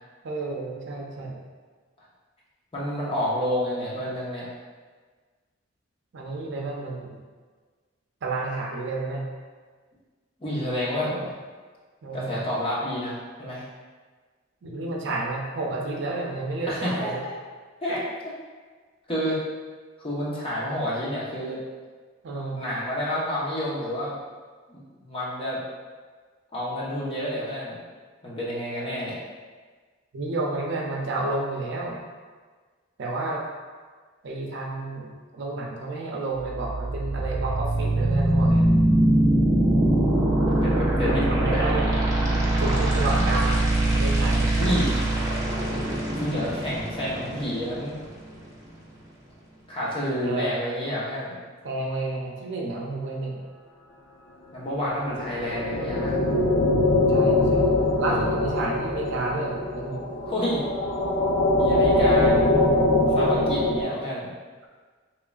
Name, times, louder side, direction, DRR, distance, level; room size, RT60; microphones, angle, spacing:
voice 1, 0.2-1.4 6.1-7.2 8.2-9.2 11.0-11.3 12.0-12.4 14.6-17.2 22.2-22.6 30.1-32.0 33.0-33.4 34.2-38.7 41.0-41.9 42.6-44.9 50.2-50.5 51.6-53.4 57.1-60.0, right 2 dB, 65° right, -1 dB, 0.5 m, -31 dB
voice 2, 2.7-4.5 10.4-11.1 12.1-13.7 16.7-17.3 17.8-18.3 19.1-19.4 20.0-21.6 22.6-24.2 24.7-25.6 26.5-27.8 28.2-29.2 40.5-41.6 42.6-43.3 44.6-45.0 46.1-48.0 49.7-51.3 54.5-56.2 58.1-58.5 60.2-60.6 61.5-62.4 63.1-64.3, equal, 30° left, -7 dB, 0.9 m, -29 dB
sound 1, 36.4-48.4, right 1 dB, 20° right, 0.6 m, -23 dB
sound 2, 55.0-63.8, left 2 dB, 85° left, 0.6 m, -22 dB
3.8 x 3.1 x 2.3 m, 1.5 s
head